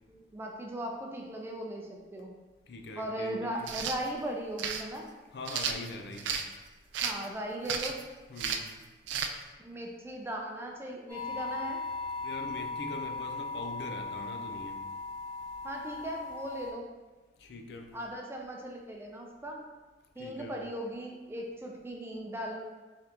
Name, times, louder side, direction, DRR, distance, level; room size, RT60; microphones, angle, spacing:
voice 1, 0.1-2.3 3.0-5.1 7.0-8.0 9.6-11.8 15.6-16.9 17.9-19.6 20.2-22.6, right 1 dB, 15° right, 0 dB, 0.4 m, -38 dB
voice 2, 2.7-3.7 5.3-6.5 8.3-8.7 12.2-14.8 17.4-18.0 20.2-20.6, left 2 dB, 65° left, 4 dB, 0.4 m, -42 dB
sound 1, 3.6-4.0 4.6-4.8 5.5-6.5 6.9-7.3 7.7-8.0 8.4-8.7 9.1-9.3, right 6 dB, 85° right, 0.3 m, -33 dB
sound 2, 11.1-16.7, left 3 dB, 10° left, 1.0 m, -38 dB
3.8 x 3.3 x 2.9 m, 1.2 s
head